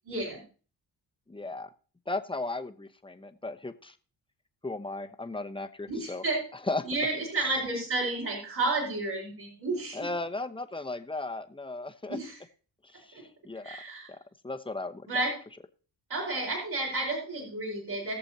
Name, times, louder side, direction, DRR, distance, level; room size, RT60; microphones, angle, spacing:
voice 1, 0.0-0.4 5.9-6.4 6.8-10.1 12.1-12.4 13.1-13.2 13.6-14.1 15.1-15.3 16.1-18.2, right 2 dB, 60° right, -5 dB, 4.8 m, -31 dB
voice 2, 1.3-1.7 2.1-3.9 4.6-6.2 6.7-6.8 9.9-12.2 12.8-13.8 14.1-14.2 14.4-15.1, left 2 dB, 10° left, 7 dB, 1.0 m, -36 dB
20.5 x 6.9 x 2.8 m, 0.40 s
cardioid pair, 65°, 43 cm